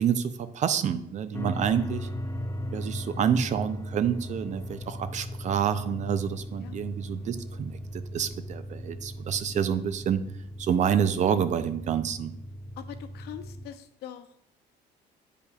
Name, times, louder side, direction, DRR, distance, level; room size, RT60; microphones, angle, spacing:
voice 1, 0.0-2.1 2.7-10.2 10.6-12.3, right 8 dB, 45° right, 12 dB, 0.5 m, -28 dB
sound 1, 1.3-13.7, equal, 15° left, 0.5 m, -37 dB
voice 2, 12.8-14.4, left 10 dB, 75° left, 10 dB, 0.6 m, -42 dB
8.5 x 5.0 x 2.3 m, 0.75 s
cardioid pair, 110°, 17 cm